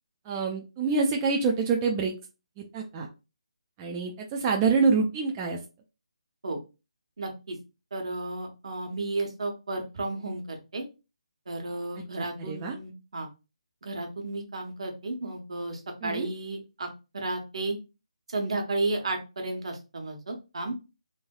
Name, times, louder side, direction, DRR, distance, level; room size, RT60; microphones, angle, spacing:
voice 1, 0.3-2.1 2.6-3.1 3.8-5.6 12.4-12.8 16.0-16.3, right 4 dB, 20° right, 1 dB, 0.3 m, -26 dB
voice 2, 7.2-7.6 7.9-10.8 11.5-13.3 13.8-17.8 18.3-20.7, right 2 dB, 65° right, 3 dB, 1.0 m, -33 dB
3.2 x 2.7 x 2.3 m, 0.29 s
figure-of-eight pair, 160°, 3 cm